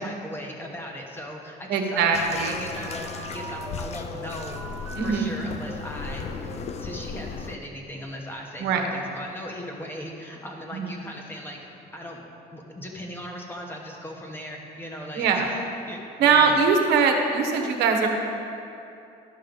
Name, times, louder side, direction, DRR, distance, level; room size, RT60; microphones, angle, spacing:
voice 1, 0.0-4.6 5.0-11.6 11.9-12.2 12.5-15.6 15.9-16.6, equal, 15° left, 0 dB, 1.3 m, -38 dB
voice 2, 1.7-2.6 5.0-5.3 8.6-8.9 10.7-10.9 15.1-15.5 16.2-18.1, right 5 dB, 80° right, 3 dB, 1.1 m, -21 dB
Bathtub (filling or washing), 2.1-7.6, left 6 dB, 40° left, 0.4 m, -36 dB
sound 1, 2.2-5.2 5.7-7.3, right 3 dB, 25° right, 0.9 m, -41 dB
12.5 x 5.6 x 3.9 m, 2.8 s
cardioid pair, 110°, 17 cm